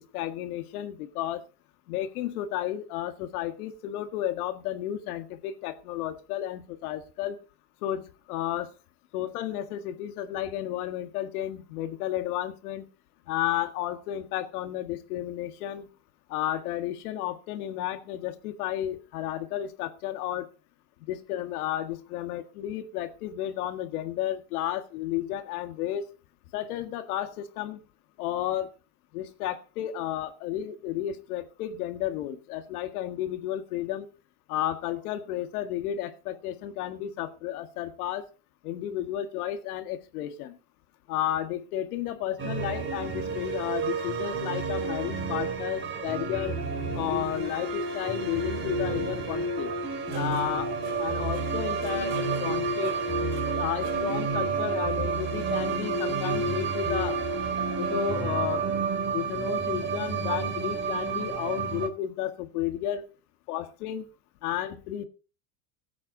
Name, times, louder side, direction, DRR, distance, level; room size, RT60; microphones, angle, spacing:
voice 1, 0.1-1.4 1.9-7.4 7.8-8.7 9.1-12.9 13.3-15.9 16.3-20.5 21.1-26.1 26.5-27.8 28.2-28.7 29.1-34.1 34.5-38.3 38.6-40.5 41.1-46.6 46.9-49.7 50.1-50.7 51.0-53.0 53.5-57.2 57.8-58.6 59.1-63.1 63.5-64.1 64.4-65.1, left 12 dB, 80° left, 1.9 m, -32 dB
sound 1, 42.4-61.9, right 4 dB, 25° right, 3.1 m, -30 dB
16.5 x 8.5 x 4.0 m
supercardioid pair, 130°, 44 cm